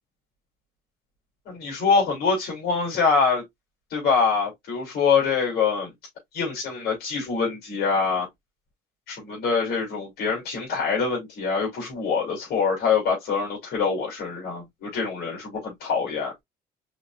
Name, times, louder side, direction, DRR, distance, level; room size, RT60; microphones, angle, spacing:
voice 1, 1.5-3.4 3.9-5.9 6.3-8.3 9.1-16.3, left 5 dB, 70° left, 2.8 m, -24 dB
5.1 x 3.7 x 2.4 m
cardioid pair, 110°, 17 cm